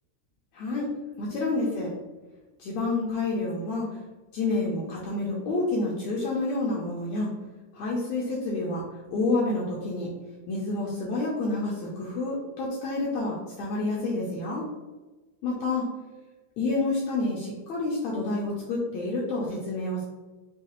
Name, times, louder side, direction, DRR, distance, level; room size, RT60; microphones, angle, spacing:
voice 1, 0.5-0.9 1.2-1.9 2.6-3.9 4.3-7.3 7.7-10.1 10.5-14.6 15.4-15.9 16.6-20.0, left 2 dB, 75° left, -4 dB, 1.7 m, -29 dB
5.6 x 2.4 x 2.9 m, 1.2 s
omnidirectional pair, 3.7 m